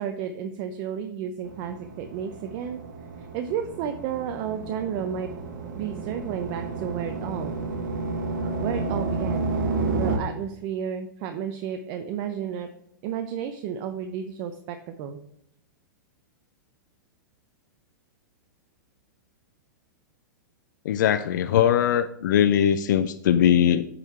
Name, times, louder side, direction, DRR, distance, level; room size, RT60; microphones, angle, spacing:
voice 1, 0.0-2.8 3.2-5.3 5.8-7.5 8.6-9.5 10.0-12.7 13.0-15.2, right 8 dB, 45° right, 7 dB, 0.6 m, -32 dB
sound 1, 1.5-10.2, right 3 dB, 65° right, 1.2 m, -31 dB
voice 2, 20.9-23.9, left 9 dB, 70° left, 11 dB, 0.4 m, -21 dB
9.0 x 3.9 x 4.2 m, 0.77 s
hypercardioid pair, 110°, 10 cm